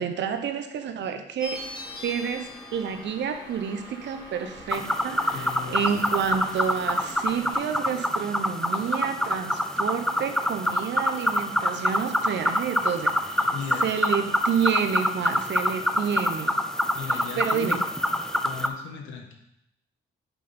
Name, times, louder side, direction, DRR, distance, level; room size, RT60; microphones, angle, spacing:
voice 1, 0.0-1.6 2.0-13.5 13.8-16.6 17.1-17.8, right 7 dB, 65° right, 7 dB, 0.9 m, -29 dB
sound 1, 1.4-7.5, left 1 dB, 20° left, 2.7 m, -42 dB
sound 2, 4.7-18.7, left 1 dB, 5° left, 0.6 m, -26 dB
voice 2, 5.3-6.1 13.5-13.9 16.9-17.8 18.4-19.3, left 6 dB, 85° left, 2 dB, 1.4 m, -36 dB
7.4 x 5.3 x 4.3 m, 0.80 s
cardioid pair, 90°, 20 cm